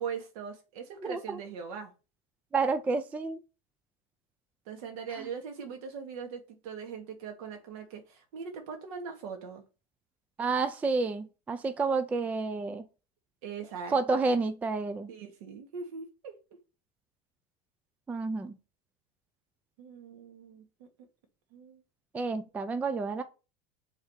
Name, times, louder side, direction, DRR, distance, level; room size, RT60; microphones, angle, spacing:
voice 1, 0.0-1.9 4.7-9.6 13.4-14.2 15.1-16.3 19.8-20.9 21.5-21.8, right 6 dB, 70° right, 2.7 m, -41 dB
voice 2, 1.0-1.4 2.5-3.4 5.2-5.3 10.4-12.8 13.9-15.1 18.1-18.6 22.1-23.2, right 4 dB, 10° right, 0.4 m, -30 dB
7.2 x 4.0 x 6.7 m
cardioid pair, 175°, 20 cm